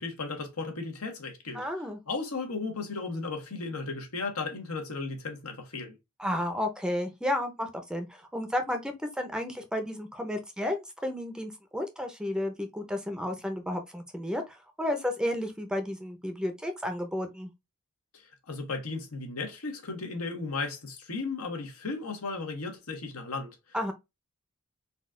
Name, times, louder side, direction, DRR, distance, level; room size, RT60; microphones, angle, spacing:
voice 1, 0.0-1.6 2.1-6.0 18.1-23.6, left 3 dB, 80° left, 1.2 m, -35 dB
voice 2, 1.5-2.0 6.2-17.5 23.7-23.9, left 1 dB, 5° right, 0.6 m, -32 dB
4.1 x 2.4 x 3.7 m
head